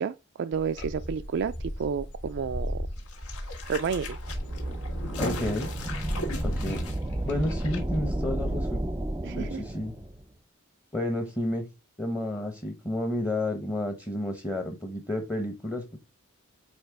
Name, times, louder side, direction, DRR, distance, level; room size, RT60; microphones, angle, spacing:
voice 1, 0.0-2.8 3.6-4.2 9.2-9.6, right 6 dB, 55° right, 0.4 m, -31 dB
sound 1, 0.5-7.5, equal, 55° left, 2.0 m, -36 dB
sound 2, 3.0-7.8 8.1-8.2, left 2 dB, 80° left, 1.8 m, -38 dB
sound 3, 3.8-10.2, right 1 dB, 15° right, 0.6 m, -32 dB
voice 2, 5.2-5.7 6.4-6.9 7.2-8.9 9.3-9.9 10.9-11.7 12.0-16.0, left 1 dB, 15° left, 0.9 m, -31 dB
8.7 x 2.9 x 4.6 m
head